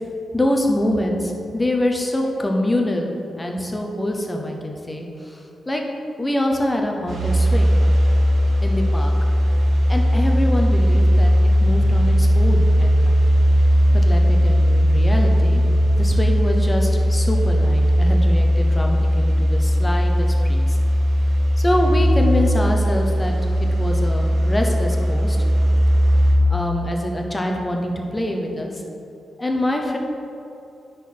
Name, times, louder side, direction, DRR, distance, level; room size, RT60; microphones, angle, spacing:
voice 1, 0.3-5.8 6.2-7.8 8.6-9.1 9.9-11.3 11.6-13.2 13.9-20.8 21.6-23.3 23.6-25.4 26.4-28.8 29.4-30.0, left 1 dB, 10° left, 1 dB, 0.8 m, -25 dB
sound 1, 7.1-26.3, equal, 65° right, 1.5 m, -17 dB
10.0 x 6.2 x 4.3 m, 2.7 s
wide cardioid pair, 175°, 0 cm